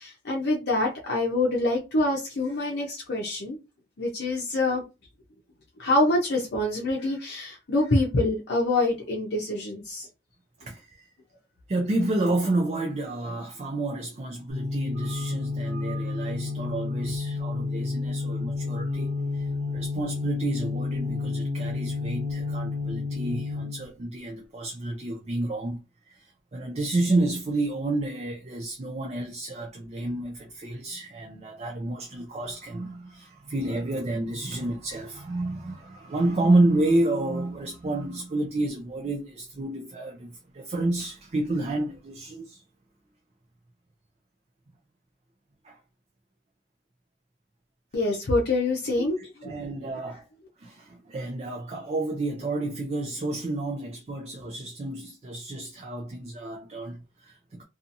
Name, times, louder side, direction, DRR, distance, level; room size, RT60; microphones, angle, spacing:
voice 1, 0.0-3.6 4.0-4.8 5.8-10.1 47.9-49.5, left 2 dB, 65° left, 0.6 m, -26 dB
voice 2, 10.6-11.1 11.7-19.5 19.7-42.6 45.6-45.8 49.0-50.2 50.6-57.6, right 2 dB, 35° right, 0.4 m, -30 dB
sound 1, 14.5-23.9, left 3 dB, 75° right, 0.8 m, -30 dB
2.6 x 2.4 x 2.6 m
head